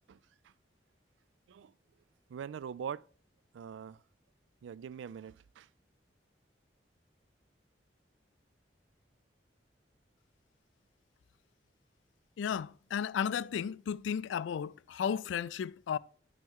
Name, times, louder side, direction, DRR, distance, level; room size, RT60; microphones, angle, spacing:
voice 1, 2.3-3.1 3.5-4.0 4.6-5.7, right 7 dB, 85° right, 0.3 m, -43 dB
voice 2, 12.4-16.0, left 7 dB, 85° left, 0.3 m, -34 dB
9.3 x 5.6 x 3.6 m
head